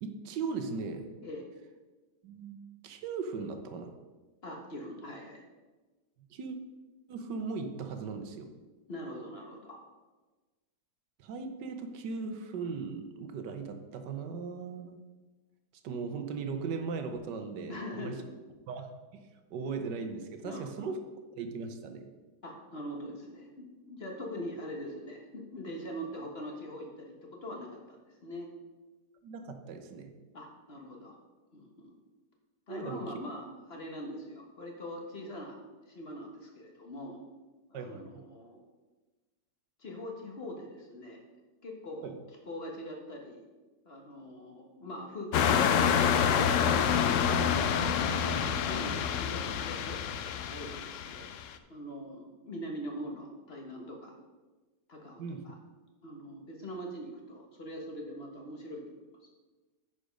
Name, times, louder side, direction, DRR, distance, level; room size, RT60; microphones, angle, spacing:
voice 1, 0.0-1.1 2.2-2.6 2.8-3.9 6.3-6.6 7.1-8.5 11.2-15.0 15.8-18.2 18.7-21.0 21.3-22.1 29.2-30.1 32.7-33.0 37.7-38.1 42.0-42.2 48.2-48.7 55.2-55.5, right 4 dB, 80° right, 7 dB, 1.4 m, -38 dB
voice 2, 4.4-5.4 8.9-9.8 17.7-18.3 20.4-20.9 22.4-28.5 30.3-31.2 31.5-32.0 32.7-37.2 37.7-38.6 39.8-41.2 41.6-42.1 42.5-43.5 43.8-46.8 48.3-51.3 51.7-54.2 54.9-55.6 56.0-58.8 59.2-59.3, equal, 40° left, 1 dB, 1.3 m, -43 dB
sound 1, 45.3-51.5, left 7 dB, 70° left, 0.7 m, -27 dB
9.5 x 5.2 x 5.1 m, 1.2 s
omnidirectional pair, 1.9 m